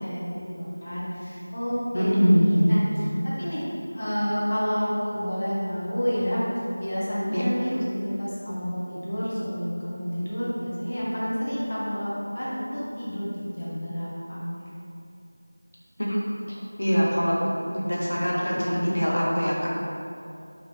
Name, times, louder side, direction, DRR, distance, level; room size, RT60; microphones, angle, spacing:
voice 1, 0.0-3.6 3.9-6.4 6.8-14.7, equal, 20° left, -9 dB, 0.5 m, -29 dB
voice 2, 1.9-2.8 7.3-7.4 16.0-16.2 16.5-17.4 17.6-19.7, equal, 70° left, -5 dB, 0.8 m, -23 dB
3.0 x 3.0 x 2.7 m, 2.6 s
figure-of-eight pair, 180°, 0 cm